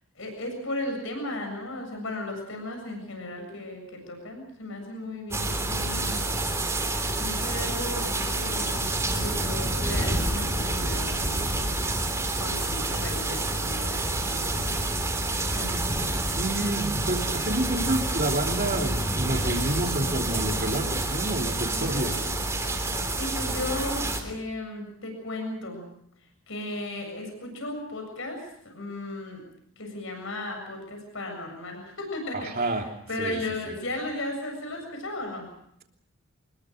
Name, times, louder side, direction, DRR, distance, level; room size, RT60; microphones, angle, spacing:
voice 1, 0.2-6.4 7.2-11.4 12.4-14.9 15.5-16.4 21.7-22.4 23.1-25.9 26.5-29.4 29.8-35.5, left 1 dB, 65° left, 4 dB, 7.5 m, -36 dB
sound 1, 5.3-24.2, right 2 dB, 15° right, 3.4 m, -28 dB
voice 2, 16.4-22.2 32.3-32.9 33.2-33.4 33.7-33.8, right 1 dB, 45° right, 2 dB, 3.1 m, -29 dB
25.5 x 21.5 x 6.4 m, 0.73 s
head